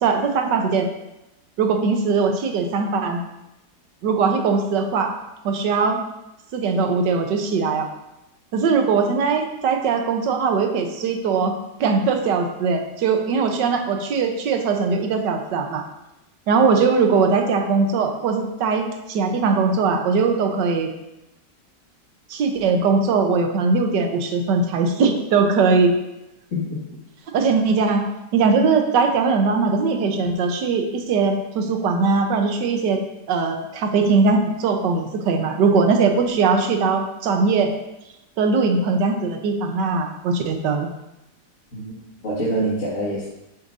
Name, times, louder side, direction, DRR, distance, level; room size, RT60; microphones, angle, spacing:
voice 1, 0.0-0.9 1.6-3.2 4.0-5.1 5.4-6.0 6.5-7.9 8.5-11.5 11.8-15.8 16.5-20.9 22.3-25.9 27.3-28.0 28.3-33.0 33.3-37.7 38.4-40.9, right 4 dB, 75° right, 4 dB, 1.6 m, -20 dB
voice 2, 41.7-43.3, right 1 dB, 45° left, -8 dB, 2.2 m, -25 dB
10.5 x 6.9 x 2.7 m, 0.92 s
omnidirectional pair, 1.9 m